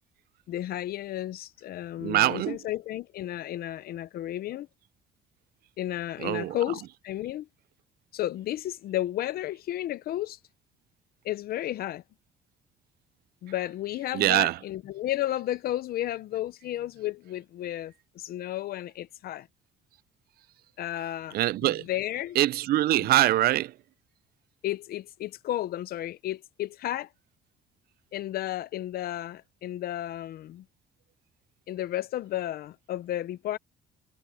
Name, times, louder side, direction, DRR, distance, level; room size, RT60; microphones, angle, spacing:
voice 1, 0.5-4.7 5.8-7.5 8.1-10.4 11.2-12.0 13.4-19.5 20.8-21.4 21.6-22.4 23.0-23.1 24.6-27.1 28.1-30.6 31.7-33.6, left 13 dB, 65° left, 0.7 m, -33 dB
voice 2, 2.0-2.6 6.2-6.6 14.1-14.6 21.3-21.8 22.4-23.7, right 15 dB, 65° right, 0.5 m, -23 dB
cardioid pair, 110°, 17 cm